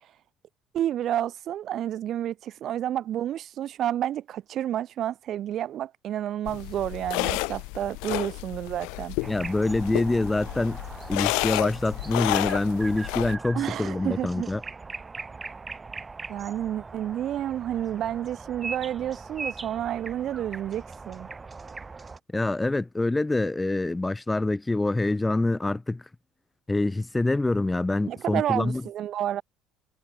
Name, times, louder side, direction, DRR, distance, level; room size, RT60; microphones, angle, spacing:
voice 1, 0.7-9.2 13.5-14.5 16.3-21.3 28.1-29.4, right 11 dB, 55° right, 0.7 m, -30 dB
sound 1, 6.5-13.4, left 31 dB, 75° left, 0.9 m, -31 dB
sound 2, 9.2-22.2, right 4 dB, 25° right, 2.4 m, -40 dB
voice 2, 9.3-10.8 11.1-14.6 22.3-26.0 26.7-28.8, left 2 dB, 15° left, 0.7 m, -25 dB
hypercardioid pair, 65°, 0 cm